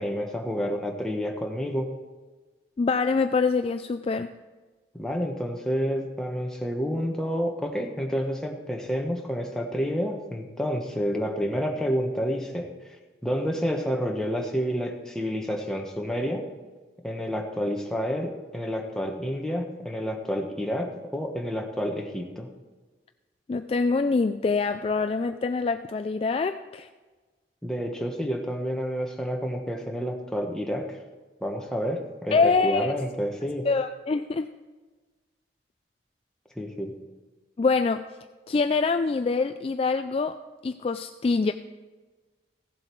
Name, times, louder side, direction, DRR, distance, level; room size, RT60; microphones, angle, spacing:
voice 1, 0.0-1.9 5.0-12.7 13.2-16.5 17.0-22.5 27.6-31.0 31.4-33.7 36.6-36.9, equal, 5° left, 1 dB, 1.2 m, -29 dB
voice 2, 2.8-4.3 23.5-26.9 32.3-33.0 33.6-34.5 37.6-38.0 38.5-40.4 40.6-41.5, left 4 dB, 35° left, 9 dB, 0.3 m, -25 dB
16.0 x 7.6 x 4.6 m, 1.3 s
head